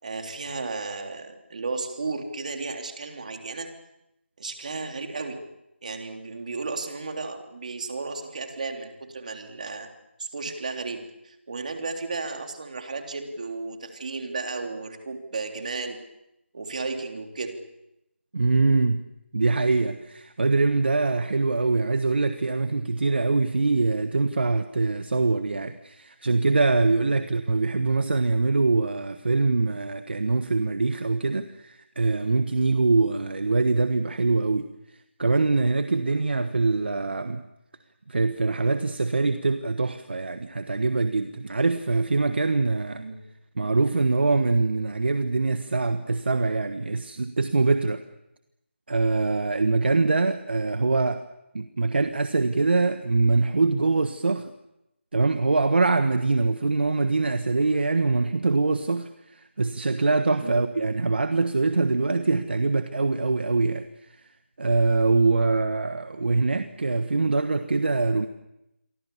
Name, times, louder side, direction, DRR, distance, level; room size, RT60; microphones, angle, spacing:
voice 1, 0.0-3.7 4.4-5.4 5.8-9.9 10.2-16.0 16.5-17.6 27.0-27.2 43.0-43.2 60.4-60.6, right 3 dB, 35° right, 4 dB, 3.5 m, -34 dB
voice 2, 18.3-34.7 35.2-37.5 38.1-43.0 43.6-48.0 48.9-51.2 51.5-54.5 55.1-64.2 64.6-68.3, right 3 dB, 55° right, 9 dB, 1.4 m, -23 dB
28.5 x 24.0 x 7.1 m, 0.87 s
figure-of-eight pair, 170°, 7 cm